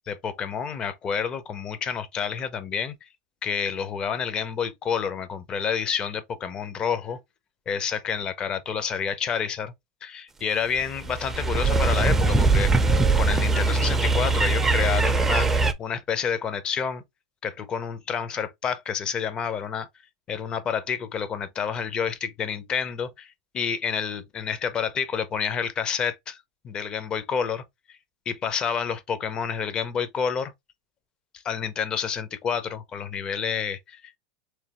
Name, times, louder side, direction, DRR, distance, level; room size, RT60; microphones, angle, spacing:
voice 1, 0.1-3.0 3.4-7.2 7.7-9.7 10.0-12.7 13.2-17.0 17.4-19.9 20.3-27.6 27.9-28.0 28.3-30.5 31.4-34.2, left 7 dB, 30° left, 0.6 m, -29 dB
sound 1, 10.8-15.7, right 3 dB, 10° right, 0.5 m, -21 dB
3.5 x 3.2 x 2.9 m
supercardioid pair, 125°, 3 cm